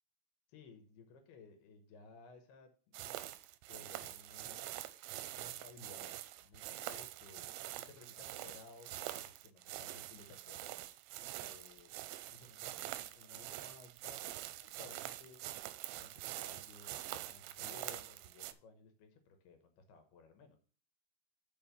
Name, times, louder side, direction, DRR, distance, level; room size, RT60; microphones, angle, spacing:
voice 1, 0.5-3.2 3.7-4.8 5.3-10.6 11.2-11.9 12.3-14.3 14.6-15.4 16.0-20.6, left 4 dB, 70° left, 6 dB, 2.8 m, -58 dB
sound 1, 2.9-18.5, right 15 dB, 90° right, 2.9 m, -45 dB
6.7 x 5.5 x 6.9 m, 0.40 s
omnidirectional pair, 5.2 m